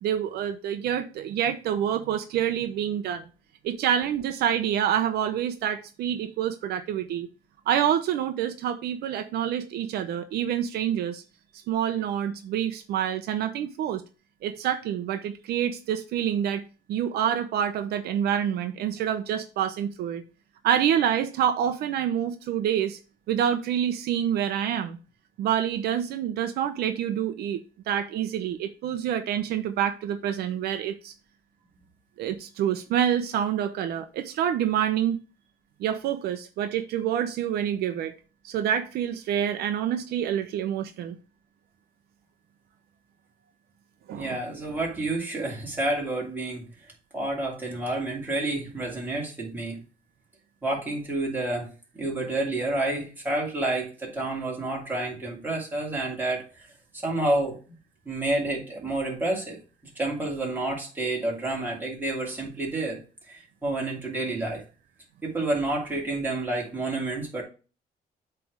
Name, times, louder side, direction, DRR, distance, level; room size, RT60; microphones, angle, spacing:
voice 1, 0.0-3.3 3.6-7.3 7.7-11.2 11.7-14.0 14.4-16.6 16.9-20.2 20.6-23.0 23.3-25.0 25.4-27.6 27.9-31.1 32.2-35.2 35.8-38.1 38.4-41.2 44.1-44.4, right 9 dB, 75° right, 0.7 m, -27 dB
voice 2, 44.1-46.7 47.1-49.8 50.6-51.7 51.9-56.7 57.0-57.6 58.0-59.6 60.0-63.0 63.3-64.6 65.2-67.4, right 2 dB, 10° right, 2.7 m, -29 dB
8.0 x 3.4 x 4.8 m
cardioid pair, 145°, 16 cm